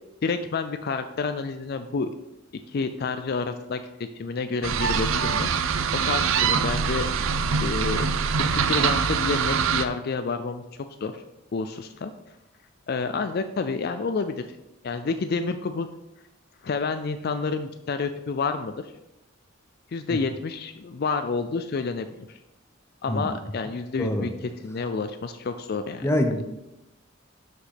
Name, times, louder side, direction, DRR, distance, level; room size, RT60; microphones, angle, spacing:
voice 1, 0.2-2.1 2.7-3.8 4.2-5.5 5.9-7.1 7.6-8.1 8.4-10.6 11.0-11.2 11.5-12.1 12.9-14.5 14.8-15.9 16.6-18.9 19.9-22.4 23.0-26.1, left 4 dB, 50° left, 9 dB, 0.4 m, -29 dB
sound 1, 4.6-9.8, right 6 dB, 75° right, 0.5 m, -24 dB
voice 2, 24.0-24.3 26.0-26.4, left 1 dB, 15° left, 4 dB, 0.8 m, -25 dB
6.1 x 5.8 x 5.7 m, 0.92 s
head